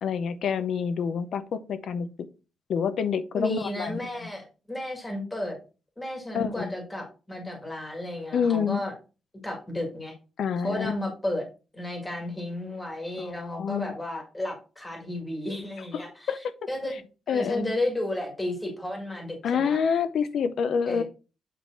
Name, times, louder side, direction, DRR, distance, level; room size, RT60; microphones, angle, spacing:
voice 1, 0.0-2.1 2.7-4.3 6.3-6.7 8.3-8.8 10.4-11.0 13.2-13.9 15.9-16.0 16.3-16.4 17.3-17.6 19.4-21.0, left 6 dB, 55° left, 12 dB, 0.7 m, -27 dB
voice 2, 3.4-5.6 6.0-8.9 9.4-10.1 10.6-11.5 11.7-17.0 17.3-19.8 20.9-21.0, left 1 dB, 10° left, 2 dB, 2.0 m, -33 dB
8.5 x 3.8 x 4.5 m, 0.32 s
wide cardioid pair, 180°, 0 cm